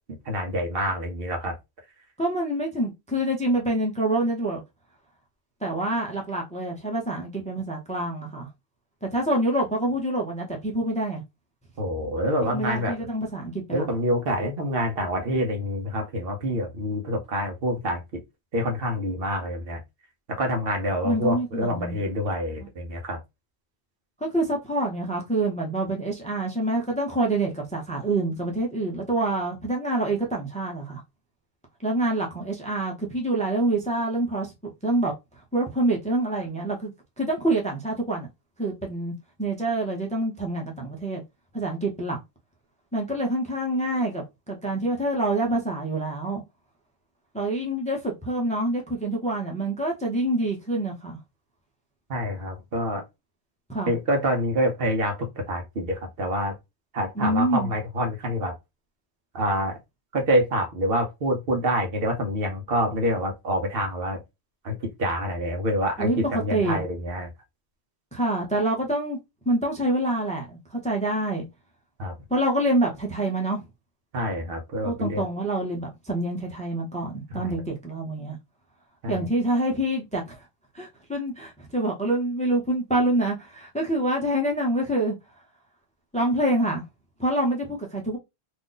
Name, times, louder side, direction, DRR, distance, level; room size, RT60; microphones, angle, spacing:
voice 1, 0.3-1.5 11.8-13.0 13.7-18.2 18.5-19.8 20.4-23.2 52.1-53.0 53.9-56.5 56.9-58.5 59.3-59.8 60.1-64.2 64.6-67.3 72.0-72.1 74.1-75.2 77.3-77.5 79.0-79.3, equal, 65° right, 1.0 m, -26 dB
voice 2, 2.2-4.6 5.6-8.5 9.1-11.2 12.5-13.9 21.0-22.0 22.6-22.7 24.2-31.0 31.8-35.1 35.5-36.9 37.2-38.3 38.6-39.1 39.4-41.2 41.5-42.2 42.9-46.4 47.3-51.2 53.7-53.9 57.2-57.7 66.0-66.2 66.5-66.8 68.1-69.2 69.5-71.5 72.3-73.6 74.8-78.4 79.1-80.5 80.7-85.2 86.1-86.8 87.2-88.2, right 1 dB, 10° left, 0.6 m, -26 dB
2.6 x 2.5 x 3.8 m
omnidirectional pair, 1.1 m